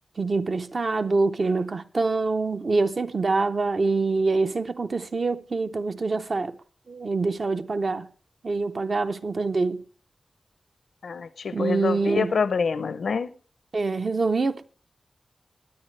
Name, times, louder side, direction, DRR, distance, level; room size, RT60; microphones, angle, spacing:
voice 1, 0.2-6.5 6.9-8.1 8.4-9.8 11.5-12.3 13.7-14.6, right 3 dB, 45° right, 0.6 m, -25 dB
voice 2, 11.0-13.3, left 5 dB, 80° left, 0.6 m, -26 dB
21.0 x 8.9 x 3.2 m
wide cardioid pair, 130°, 0 cm